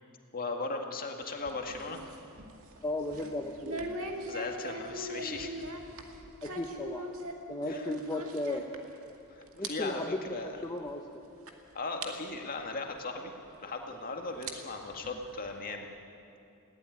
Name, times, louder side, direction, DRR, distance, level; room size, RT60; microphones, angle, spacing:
voice 1, 0.3-2.0 4.2-5.7 7.7-7.9 9.3-10.5 11.7-13.3 13.6-15.9, left 3 dB, 40° left, 3 dB, 2.0 m, -37 dB
sound 1, 1.2-9.2 9.4-9.7 10.0-10.2 10.9-11.0 11.5-11.6 12.0-12.1 13.5-13.6 14.2-15.7, right 1 dB, 65° right, 2.2 m, -41 dB
voice 2, 2.8-3.9 6.4-7.1 7.5-8.7 9.5-10.3 10.6-11.2, left 1 dB, 15° left, 2 dB, 0.9 m, -35 dB
21.0 x 17.0 x 9.5 m, 2.7 s
head